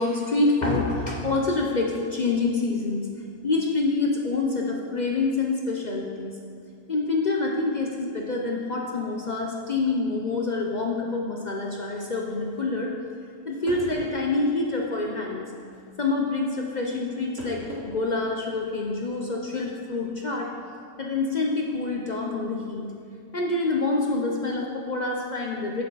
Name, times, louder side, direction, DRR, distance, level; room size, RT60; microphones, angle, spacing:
voice 1, 0.0-3.1 3.4-6.4 6.9-12.9 13.5-15.4 16.0-20.5 21.0-22.8 23.3-25.8, left 3 dB, 50° left, 0 dB, 0.5 m, -26 dB
sound 1, 13.3-13.4 13.7-14.2 15.6-15.9 17.4-17.9 18.3-18.4 19.5-19.7, left 1 dB, 75° right, 2.7 m, -38 dB
8.8 x 6.9 x 4.0 m, 2.3 s
omnidirectional pair, 1.5 m